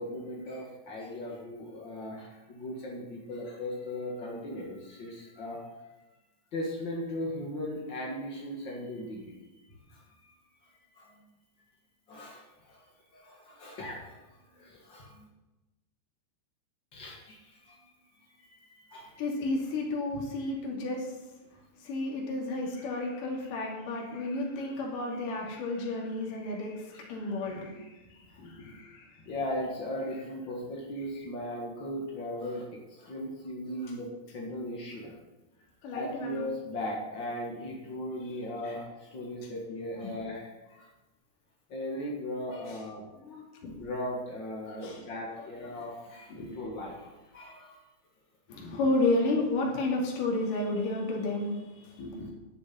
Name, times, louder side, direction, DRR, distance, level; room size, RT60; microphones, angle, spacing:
voice 1, 0.0-5.6 6.5-9.6 9.9-10.4 10.9-11.3 12.1-12.8 13.1-15.3 16.9-17.8 18.1-19.1 20.4-20.5 21.5-22.1 29.2-35.1 35.9-40.9 41.7-43.0 43.6-47.8, left 1 dB, 75° left, -2 dB, 1.0 m, -38 dB
voice 2, 19.2-21.2 21.8-29.2 35.8-36.5 38.2-38.3 39.4-39.5 40.0-40.1 42.5-42.8 43.2-43.8 44.6-45.0 46.3-46.6 48.5-52.3, left 2 dB, 55° left, -2 dB, 3.8 m, -32 dB
10.5 x 6.8 x 9.3 m, 1.1 s
omnidirectional pair, 5.0 m